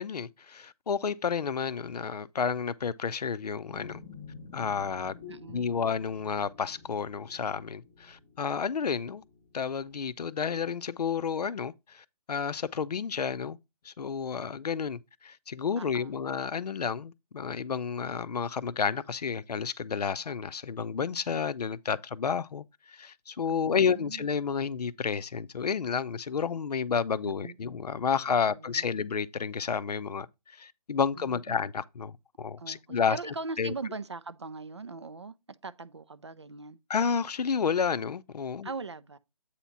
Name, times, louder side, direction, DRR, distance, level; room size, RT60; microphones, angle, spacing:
voice 1, 0.0-4.0 4.5-5.2 5.5-9.2 9.5-13.6 13.8-33.2 33.6-33.7 36.9-38.7, left 6 dB, 90° left, 0.5 m, -31 dB
sound 1, 3.6-10.2, left 5 dB, 10° left, 0.8 m, -50 dB
voice 2, 5.3-5.7 15.8-16.2 23.5-24.3 27.2-27.5 28.3-28.9 31.2-31.6 32.6-35.3 35.6-36.8 38.6-39.2, right 4 dB, 45° right, 0.5 m, -40 dB
8.3 x 2.8 x 5.6 m
hypercardioid pair, 180°, 20 cm